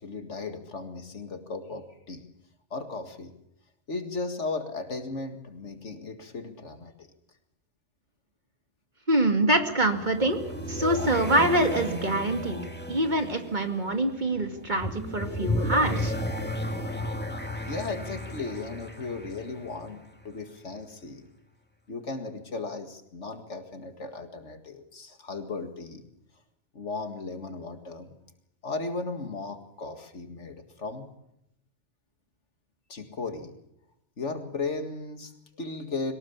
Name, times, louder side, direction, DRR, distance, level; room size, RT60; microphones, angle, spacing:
voice 1, 0.0-2.3 2.7-3.3 3.9-7.1 17.7-21.3 21.9-26.0 26.7-28.2 28.6-31.1 32.9-33.6 34.2-36.1, left 3 dB, 75° left, 7 dB, 2.3 m, -36 dB
voice 2, 9.1-10.4 10.7-12.6 12.9-16.1, right 1 dB, 40° right, 5 dB, 2.4 m, -25 dB
sound 1, 9.6-20.3, left 1 dB, 10° left, 2.0 m, -34 dB
22.5 x 19.0 x 7.2 m, 0.79 s
omnidirectional pair, 1.2 m